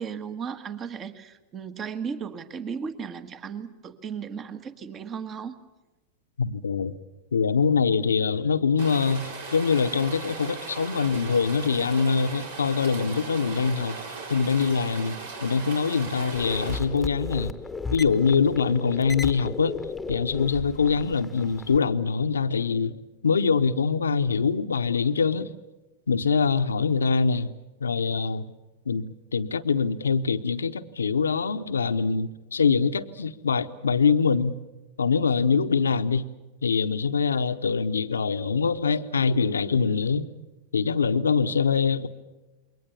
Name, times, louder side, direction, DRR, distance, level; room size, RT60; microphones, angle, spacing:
voice 1, 0.0-5.5, right 6 dB, 30° right, 1.5 m, -35 dB
voice 2, 6.4-6.9 7.3-14.0 14.3-17.5 17.9-19.8 20.1-25.5 26.1-27.5 27.8-28.5 28.9-34.6 35.0-36.2 36.6-40.3 40.7-42.1, left 5 dB, 75° left, 0.9 m, -24 dB
Rain, 8.8-16.8, right 4 dB, 70° right, 4.3 m, -38 dB
sound 1, 16.3-21.8, left 4 dB, 10° left, 1.1 m, -35 dB
28.0 x 22.5 x 7.1 m
figure-of-eight pair, 95°, 0 cm